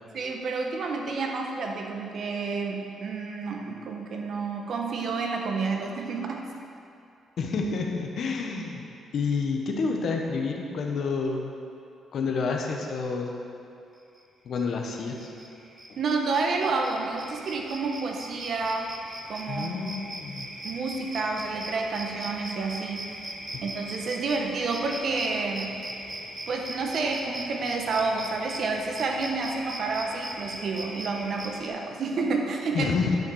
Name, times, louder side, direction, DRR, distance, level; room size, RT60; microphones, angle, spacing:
voice 1, 0.1-6.4 16.0-18.9 19.3-19.8 20.6-23.1 23.6-25.7 26.5-33.0, right 4 dB, 60° right, 2 dB, 1.2 m, -29 dB
voice 2, 7.4-8.8 9.1-11.5 12.1-13.3 14.4-15.3 19.5-20.5 23.5-23.6 32.7-33.2, left 4 dB, 60° left, 2 dB, 1.3 m, -29 dB
sound 1, 14.6-14.7 14.9-31.7, right 1 dB, 20° right, 1.2 m, -39 dB
10.5 x 5.7 x 6.5 m, 2.6 s
cardioid pair, 90°, 0 cm